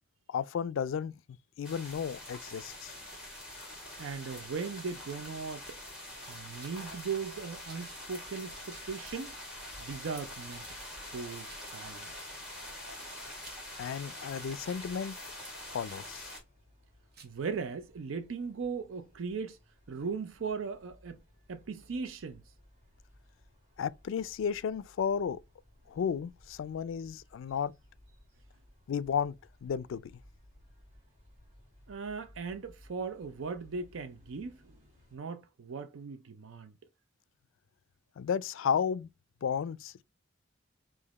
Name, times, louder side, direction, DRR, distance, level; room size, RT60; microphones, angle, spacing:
voice 1, 0.3-1.2 1.6-2.9 13.8-15.2 15.7-16.3 23.8-25.4 25.9-27.7 28.9-29.3 29.6-30.1 38.2-39.1 39.4-40.0, left 7 dB, 75° left, 0.3 m, -33 dB
sound 1, 1.6-16.4, left 1 dB, 5° right, 1.8 m, -45 dB
voice 2, 4.0-5.7 6.3-9.4 9.8-10.7 11.1-12.1 17.2-19.6 19.9-21.2 21.5-22.4 31.9-34.8 35.1-36.7, right 5 dB, 80° right, 0.5 m, -38 dB
Rattle, 6.5-6.8 7.6-7.9 8.6-8.9 10.4-10.6 11.4-11.6 12.5-13.6 14.6-14.9 15.8-16.1 17.1-17.4, right 5 dB, 55° right, 0.8 m, -57 dB
sound 2, 15.8-35.2, left 1 dB, 35° right, 2.0 m, -61 dB
5.0 x 2.6 x 4.0 m
head